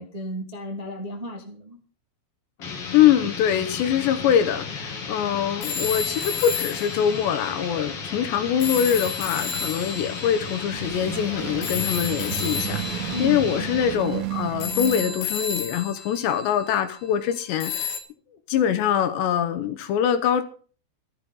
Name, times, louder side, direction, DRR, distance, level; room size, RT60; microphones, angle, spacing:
voice 1, 0.0-1.8 13.1-13.4, left 1 dB, 70° right, 0.3 m, -33 dB
sound 1, 2.6-14.1, left 5 dB, 40° left, 2.1 m, -34 dB
voice 2, 2.9-17.9 18.5-20.4, left 9 dB, 70° left, 3.0 m, -23 dB
sound 2, 5.6-8.1 8.6-17.1 17.6-18.0, left 7 dB, 90° left, 4.6 m, -32 dB
sound 3, 10.3-15.6, right 15 dB, 85° right, 3.6 m, -33 dB
14.5 x 13.0 x 5.5 m
omnidirectional pair, 5.9 m